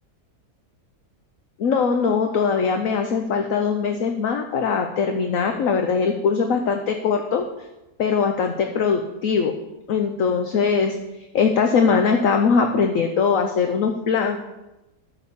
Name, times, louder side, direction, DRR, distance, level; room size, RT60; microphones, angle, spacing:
voice 1, 1.6-7.4 8.0-9.5 9.9-11.0 11.3-14.4, left 5 dB, 60° left, 5 dB, 1.1 m, -21 dB
12.5 x 6.5 x 7.0 m, 1.0 s
omnidirectional pair, 1.8 m